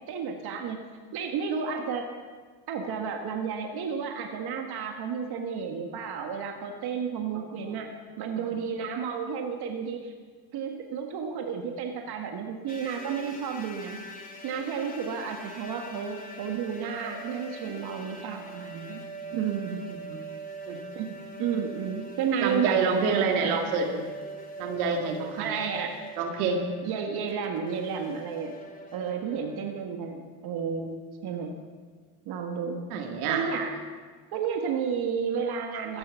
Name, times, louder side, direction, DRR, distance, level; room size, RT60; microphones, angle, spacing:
voice 1, 0.1-0.8 1.1-2.1 2.7-7.9 8.2-10.1 10.5-14.0 14.4-19.0 19.3-19.9 20.9-21.1 21.4-23.6 25.4-26.0 26.8-28.5 28.9-30.9 31.2-31.5 32.2-32.9 33.3-33.7 34.3-36.0, right 6 dB, 60° right, 4 dB, 1.7 m, -32 dB
sound 1, 12.7-29.8, right 2 dB, 20° left, 2.3 m, -43 dB
voice 2, 22.4-24.0 24.6-25.6 26.2-26.6 32.9-33.5, right 5 dB, 80° right, 3 dB, 2.0 m, -27 dB
14.0 x 10.0 x 7.0 m, 1.5 s
supercardioid pair, 75°, 43 cm